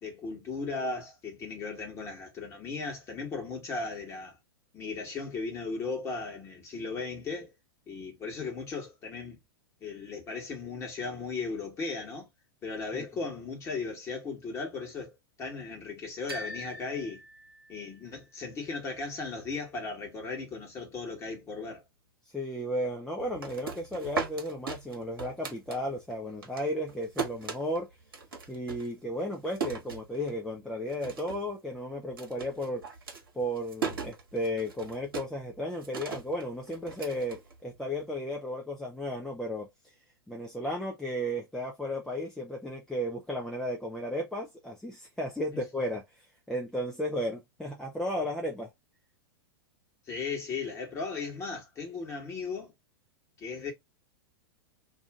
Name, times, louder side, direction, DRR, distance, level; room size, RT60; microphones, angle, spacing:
voice 1, 0.0-4.4 4.7-7.5 7.9-9.4 9.8-12.3 12.6-17.2 17.7-21.8 45.5-45.6 50.1-52.7 53.4-53.7, left 4 dB, 20° left, 1.4 m, -36 dB
sound 1, 16.3-18.2, left 1 dB, 85° right, 0.7 m, -43 dB
voice 2, 22.3-27.9 28.5-32.8 33.3-39.7 40.3-46.0 46.5-48.7, equal, 5° left, 0.6 m, -34 dB
sound 2, 23.2-26.1 26.4-30.6 30.9-31.5 31.7-38.0, right 5 dB, 65° right, 1.1 m, -38 dB
2.7 x 2.5 x 3.6 m
figure-of-eight pair, 100°, 12 cm